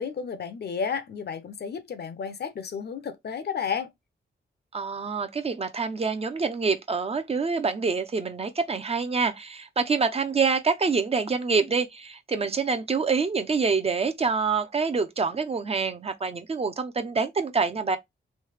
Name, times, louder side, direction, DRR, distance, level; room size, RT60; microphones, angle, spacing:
voice 1, 0.0-3.9, left 6 dB, 60° left, 0.6 m, -32 dB
voice 2, 4.7-18.0, right 4 dB, 30° right, 0.5 m, -26 dB
3.2 x 2.7 x 3.2 m
wide cardioid pair, 120°, 19 cm